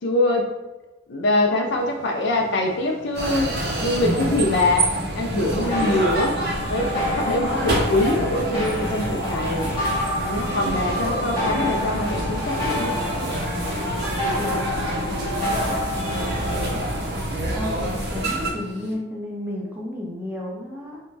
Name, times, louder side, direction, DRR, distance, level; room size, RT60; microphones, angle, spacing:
voice 1, 0.0-0.5 1.1-3.5 3.8-4.9 5.2-6.4 6.7-9.7 10.2-13.0, left 1 dB, 60° left, 3 dB, 0.4 m, -23 dB
sound 1, 1.6-18.9, left 1 dB, 80° left, 0.9 m, -43 dB
sound 2, 3.1-18.5, right 1 dB, 60° right, 0.6 m, -27 dB
sound 3, 5.7-17.0, left 1 dB, 35° right, 1.0 m, -29 dB
voice 2, 14.4-21.0, left 1 dB, 10° right, -4 dB, 0.5 m, -34 dB
2.5 x 2.2 x 3.2 m, 1.1 s
head